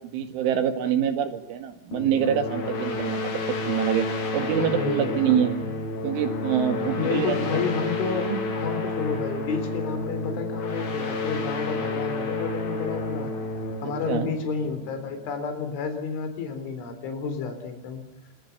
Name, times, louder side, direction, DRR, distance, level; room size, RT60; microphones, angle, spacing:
voice 1, 0.1-3.4 3.7-4.1 4.3-5.5 6.0-7.6 8.3-8.4 11.8-11.9 14.1-14.3, right 9 dB, 85° right, 8 dB, 4.5 m, -25 dB
sound 1, 1.9-15.2, left 3 dB, 55° left, 5.0 m, -31 dB
voice 2, 4.6-5.7 6.9-13.3 13.8-18.0, left 5 dB, 80° left, 8 dB, 6.0 m, -30 dB
26.0 x 22.0 x 6.9 m, 0.83 s
omnidirectional pair, 5.4 m